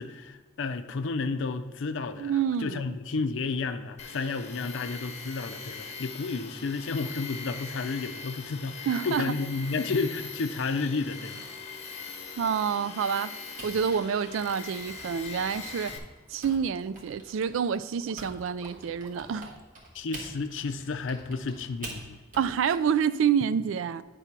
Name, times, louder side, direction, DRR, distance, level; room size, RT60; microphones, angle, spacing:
voice 1, 0.0-11.4 19.9-22.2, left 4 dB, 65° left, 0.5 m, -32 dB
voice 2, 2.2-2.8 8.9-9.3 12.4-16.0 16.3-19.5 22.4-24.0, right 7 dB, 75° right, 0.3 m, -28 dB
Tools, 4.0-16.0, left 5 dB, 35° left, 0.9 m, -41 dB
Typing, 13.6-18.3 18.6-22.8, right 1 dB, 45° right, 1.7 m, -45 dB
sound 1, 14.1-19.7, right 1 dB, 15° right, 0.7 m, -55 dB
9.4 x 3.5 x 5.8 m
head